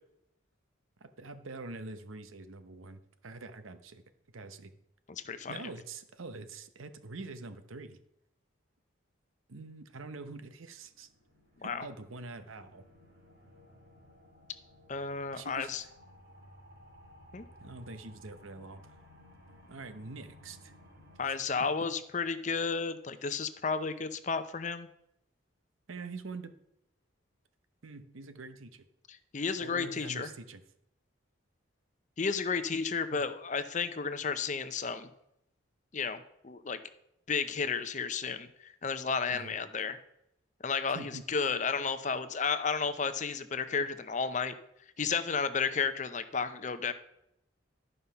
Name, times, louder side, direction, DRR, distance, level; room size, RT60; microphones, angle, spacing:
voice 1, 1.0-4.0 4.3-4.7 5.5-8.0 9.5-11.1 11.6-12.8 15.3-15.9 17.6-18.9 19.7-20.7 21.6-21.7 25.9-26.5 27.8-28.9 29.6-30.6 39.3-39.5 40.9-41.2, right 3 dB, 90° right, 10 dB, 0.8 m, -45 dB
voice 2, 5.1-5.6 11.6-11.9 14.9-15.8 17.3-17.5 21.2-24.9 29.3-30.3 32.2-35.1 35.9-36.8 37.3-40.0 40.6-44.5 45.0-46.9, left 5 dB, 35° left, 11 dB, 0.6 m, -32 dB
sound 1, 10.6-21.2, left 1 dB, 60° right, 3.3 m, -57 dB
11.5 x 5.5 x 5.6 m, 0.80 s
head